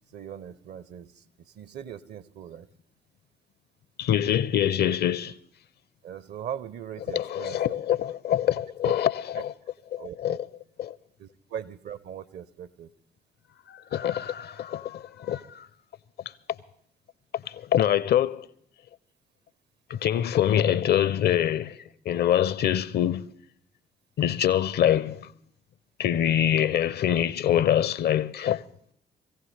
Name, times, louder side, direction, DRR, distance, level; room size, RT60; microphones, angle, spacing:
voice 1, 0.1-1.1 1.6-2.7 6.0-7.8 8.8-8.9 10.0-10.4 11.2-12.9, right 9 dB, 55° right, 0.7 m, -39 dB
voice 2, 4.0-5.3 7.1-9.5 9.9-10.5 10.8-10.9 13.7-15.7 17.5-18.5 19.9-21.8 22.1-23.3 24.2-25.3 26.0-28.6, left 10 dB, 50° left, 0.6 m, -25 dB
21.5 x 15.5 x 3.3 m
figure-of-eight pair, 40°, 21 cm